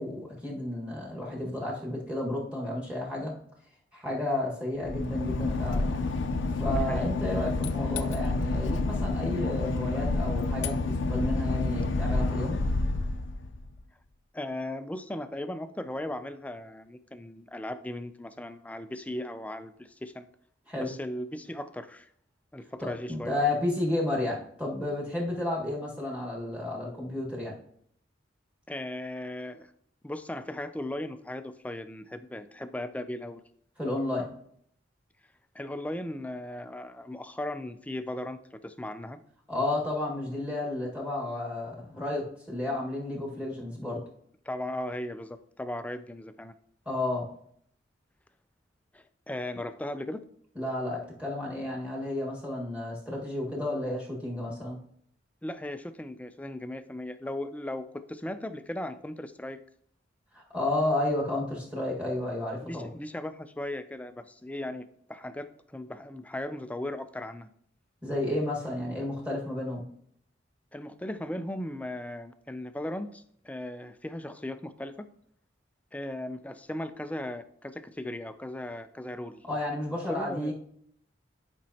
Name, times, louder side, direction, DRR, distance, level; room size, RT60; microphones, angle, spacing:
voice 1, 0.0-3.3 3.9-6.0 6.6-12.6 20.7-20.9 22.8-27.5 33.8-34.3 39.5-44.0 46.8-47.3 50.5-54.8 60.3-62.9 68.0-69.8 79.5-80.5, left 1 dB, 10° right, -3 dB, 1.5 m, -32 dB
Boat Water vehicle / Engine, 4.8-13.7, left 2 dB, 85° left, 0.6 m, -29 dB
voice 2, 6.7-7.0 14.3-20.3 20.8-22.1 22.5-23.4 28.7-29.7 30.0-33.4 35.5-39.2 44.5-46.5 48.9-50.2 55.4-59.6 62.6-67.5 70.7-75.1 75.9-79.4 80.1-80.5, left 1 dB, 10° left, 11 dB, 0.3 m, -37 dB
10.5 x 5.3 x 2.8 m, 0.66 s
head